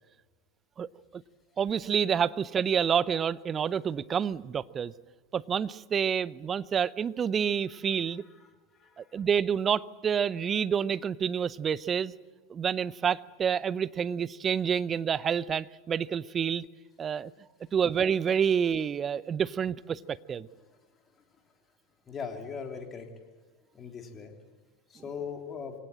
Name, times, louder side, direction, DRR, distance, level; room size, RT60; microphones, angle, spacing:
voice 1, 0.8-1.2 1.6-4.9 5.3-8.2 9.0-12.1 12.5-16.6 17.0-17.3 17.7-20.5, right 7 dB, 30° right, 19 dB, 0.7 m, -28 dB
voice 2, 22.1-23.1 23.7-24.3 24.9-25.7, left 6 dB, 30° left, 3 dB, 3.4 m, -39 dB
24.0 x 18.0 x 8.9 m, 1.3 s
figure-of-eight pair, 80°, 0 cm